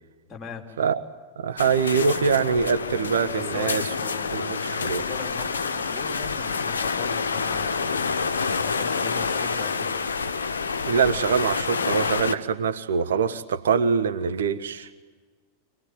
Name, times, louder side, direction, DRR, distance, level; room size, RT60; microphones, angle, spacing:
voice 1, 0.3-0.6 3.3-8.0 8.6-10.0, left 5 dB, 20° left, 1 dB, 3.6 m, -39 dB
voice 2, 1.4-3.9 4.3-5.0 10.8-14.9, right 6 dB, 65° right, 9 dB, 1.1 m, -24 dB
sound 1, 1.6-12.3, left 5 dB, 70° left, 0.9 m, -28 dB
25.5 x 18.5 x 9.3 m, 1.4 s
figure-of-eight pair, 90°, 0 cm